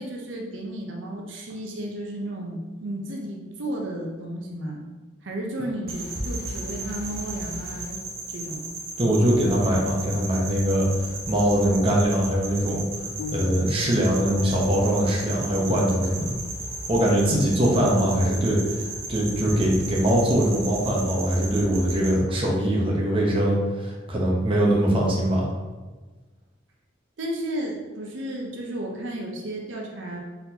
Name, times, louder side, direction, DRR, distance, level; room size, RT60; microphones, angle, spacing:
voice 1, 0.0-4.8 5.2-8.0 8.3-8.7 27.2-30.2, right 1 dB, 75° right, -1 dB, 0.7 m, -33 dB
sound 1, 5.9-22.2, right 2 dB, 50° right, 1.0 m, -35 dB
voice 2, 9.0-12.8 13.3-16.4 16.9-25.5, equal, 30° right, -3 dB, 0.8 m, -22 dB
sound 2, 13.2-14.2, left 4 dB, 65° left, 0.3 m, -37 dB
4.2 x 4.1 x 2.8 m, 1.3 s
head